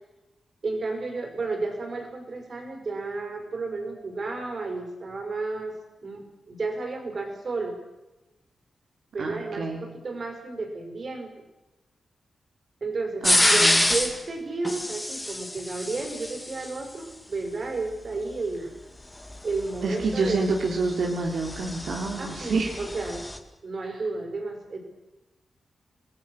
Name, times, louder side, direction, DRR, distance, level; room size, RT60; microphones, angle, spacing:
voice 1, 0.6-5.8 6.0-7.8 9.1-11.3 12.8-18.7 19.4-20.4 22.2-23.2 23.6-24.8, right 3 dB, 45° right, 4 dB, 5.8 m, -32 dB
voice 2, 9.2-9.8 13.2-13.8 19.8-22.8 23.9-24.0, right 3 dB, 75° right, 0 dB, 3.3 m, -28 dB
sound 1, 13.2-14.2 14.6-16.7 19.3-23.4, left 1 dB, 10° left, 2.0 m, -26 dB
27.5 x 19.5 x 6.5 m, 0.99 s
wide cardioid pair, 165°, 0 cm